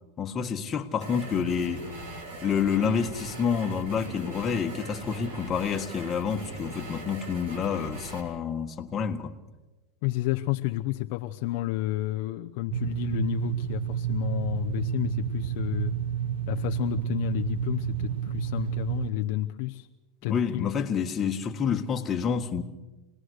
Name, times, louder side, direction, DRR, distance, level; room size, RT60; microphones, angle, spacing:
voice 1, 0.2-1.9 2.4-9.3 20.2-22.6, left 6 dB, 25° left, 1.8 m, -28 dB
sound 1, 1.0-8.2, right 2 dB, 70° right, 6.4 m, -40 dB
voice 2, 10.0-16.0 16.5-19.9 20.2-20.7, left 16 dB, 60° left, 0.8 m, -31 dB
sound 2, 12.7-19.1, right 9 dB, 85° right, 1.0 m, -30 dB
27.0 x 19.5 x 6.5 m
supercardioid pair, 135°, 0 cm